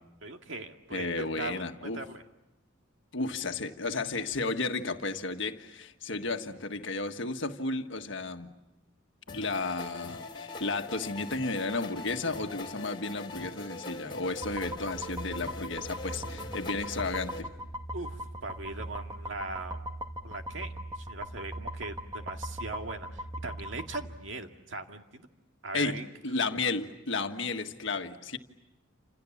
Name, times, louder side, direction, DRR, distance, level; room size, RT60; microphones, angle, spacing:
voice 1, 0.2-1.6 1.9-2.2 17.9-19.8 20.2-25.3 25.6-26.1, right 3 dB, 70° right, 4 dB, 2.1 m, -40 dB
voice 2, 0.9-2.0 3.1-8.5 9.3-17.5 25.7-28.4, left 3 dB, 65° left, 6 dB, 1.6 m, -33 dB
sound 1, 9.3-17.4, left 3 dB, 25° left, 3.0 m, -42 dB
sound 2, 14.4-24.1, equal, 20° right, 1.9 m, -40 dB
29.0 x 27.5 x 7.2 m, 0.94 s
head